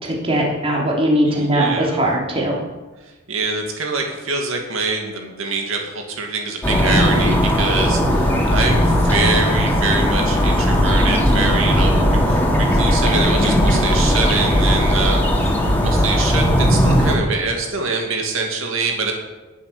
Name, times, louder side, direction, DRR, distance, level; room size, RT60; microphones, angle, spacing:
voice 1, 0.0-2.6, right 1 dB, 25° right, -2 dB, 3.3 m, -19 dB
voice 2, 1.3-2.0 3.0-19.1, right 3 dB, 70° right, 2 dB, 2.4 m, -24 dB
sound 1, 6.6-17.2, equal, 10° left, 2.9 m, -17 dB
19.5 x 7.5 x 6.9 m, 1.2 s
head